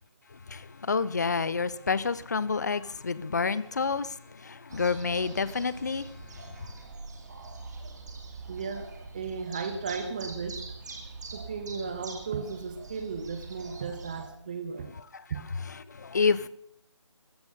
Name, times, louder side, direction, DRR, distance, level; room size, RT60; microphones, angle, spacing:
voice 1, 0.5-6.1 15.1-15.2 15.7-16.5, left 5 dB, 35° left, 0.6 m, -29 dB
sound 1, 4.7-14.3, right 3 dB, 35° right, 2.4 m, -43 dB
voice 2, 8.5-10.6 11.3-14.9 15.3-15.4, right 5 dB, 15° right, 0.7 m, -35 dB
15.0 x 10.5 x 6.9 m
figure-of-eight pair, 155°, 15 cm